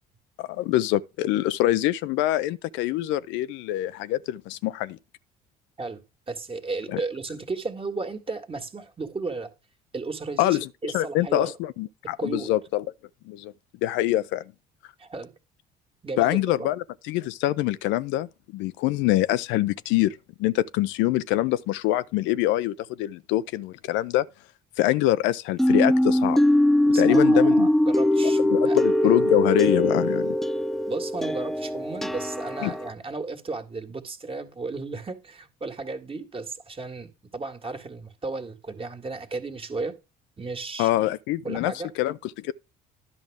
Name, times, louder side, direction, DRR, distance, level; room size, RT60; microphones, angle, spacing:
voice 1, 0.4-5.0 6.9-7.0 10.4-10.7 10.9-12.8 13.3-13.5 13.8-14.4 16.2-24.3 24.8-26.4 27.0-27.7 28.5-30.3 32.6-32.7 40.8-42.5, left 15 dB, 65° left, 0.5 m, -25 dB
voice 2, 5.8-9.5 9.9-11.5 12.2-12.5 15.0-15.3 16.0-16.7 26.9-29.1 30.9-39.9 40.4-41.1 41.4-41.9, right 3 dB, 25° right, 1.8 m, -34 dB
sound 1, 25.6-32.9, left 1 dB, ahead, 0.4 m, -22 dB
11.0 x 6.0 x 3.5 m
hypercardioid pair, 60°, 20 cm